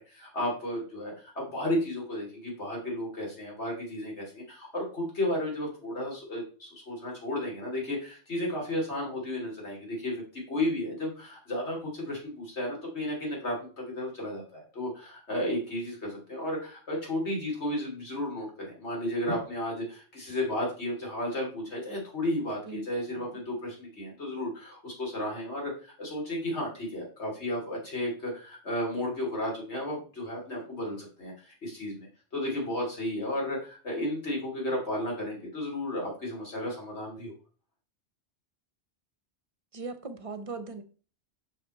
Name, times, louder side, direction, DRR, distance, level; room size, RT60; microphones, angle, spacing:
voice 1, 0.1-10.2 10.5-37.3, left 1 dB, 75° left, 3.3 m, -33 dB
voice 2, 22.7-23.4 39.7-40.8, right 4 dB, 35° right, 0.8 m, -40 dB
6.4 x 6.2 x 4.3 m
omnidirectional pair, 1.2 m